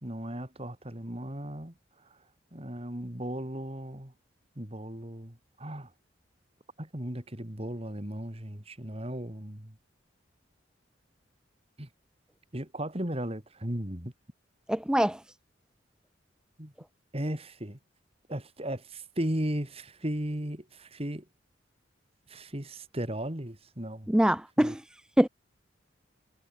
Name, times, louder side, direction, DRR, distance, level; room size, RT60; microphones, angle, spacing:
voice 1, 0.0-1.7 2.5-4.1 4.6-5.9 6.8-9.7 11.8-11.9 12.5-14.1 16.6-16.7 17.1-17.8 18.3-21.2 22.3-24.1 24.6-24.8, right 1 dB, 30° right, 2.9 m, -36 dB
voice 2, 14.7-15.2 24.1-24.8 25.2-25.3, equal, 5° right, 0.5 m, -24 dB
head